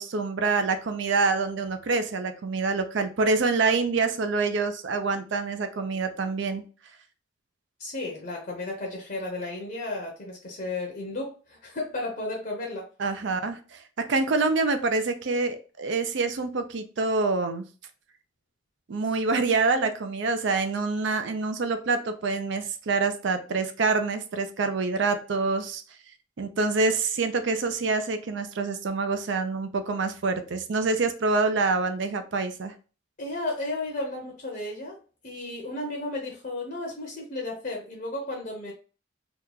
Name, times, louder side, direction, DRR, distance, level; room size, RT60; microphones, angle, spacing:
voice 1, 0.0-6.6 13.0-13.8 14.1-17.6 18.9-25.8 26.4-32.7, right 3 dB, 60° right, 8 dB, 0.4 m, -26 dB
voice 2, 7.8-12.9 33.2-35.0 35.2-38.7, left 2 dB, 45° left, 0 dB, 0.7 m, -33 dB
3.0 x 2.2 x 3.7 m, 0.36 s
head